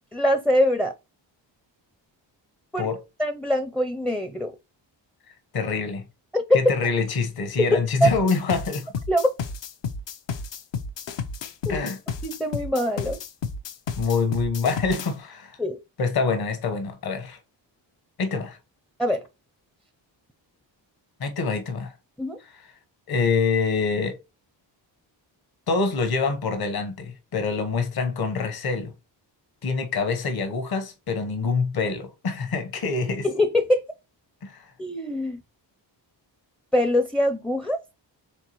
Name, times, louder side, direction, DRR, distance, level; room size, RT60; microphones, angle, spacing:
voice 1, 0.1-0.9 2.7-2.9 3.2-4.5 6.3-6.4 7.7-8.1 9.1-9.3 11.7-11.8 12.2-13.2 15.6-15.8 19.0-19.2 22.2-22.4 33.2-33.8 34.8-35.4 36.7-37.8, equal, ahead, 0.4 m, -23 dB
voice 2, 5.3-6.1 6.5-8.9 11.7-12.0 14.0-15.6 16.0-17.4 18.2-18.6 21.2-21.9 22.4-22.7 23.1-24.2 25.7-28.9 29.6-33.3 34.4-34.7, left 4 dB, 55° left, 1.1 m, -26 dB
sound 1, 8.1-15.1, left 5 dB, 70° left, 0.8 m, -32 dB
4.5 x 3.6 x 3.0 m
cardioid pair, 105°, 45 cm